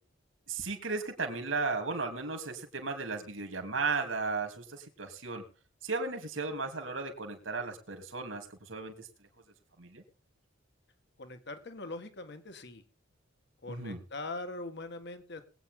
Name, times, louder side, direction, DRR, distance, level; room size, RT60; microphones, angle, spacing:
voice 1, 0.5-5.4 5.8-9.1 9.8-10.0 13.7-14.0, right 4 dB, 80° right, 5 dB, 3.1 m, -35 dB
voice 2, 11.2-12.8 13.6-15.4, left 2 dB, 60° left, 9 dB, 1.6 m, -42 dB
21.5 x 9.0 x 3.7 m, 0.38 s
head